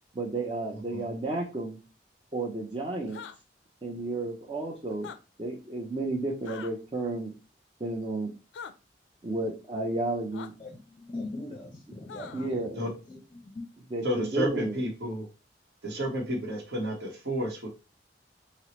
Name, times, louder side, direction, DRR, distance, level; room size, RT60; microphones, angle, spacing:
voice 1, 0.1-1.8 2.3-3.2 3.8-5.1 5.4-7.3 7.8-8.3 9.2-10.5 12.3-12.8 13.9-14.8, right 2 dB, 25° right, 0.5 m, -32 dB
sound 1, 3.1-3.4 4.9-5.2 6.5-6.7 8.5-8.7 10.3-10.5 12.1-12.5, left 7 dB, 80° left, 0.4 m, -42 dB
voice 2, 10.6-13.7, left 2 dB, 25° left, 0.6 m, -41 dB
voice 3, 14.0-15.3 15.8-17.7, equal, 60° right, 1.0 m, -31 dB
4.5 x 2.0 x 2.9 m
head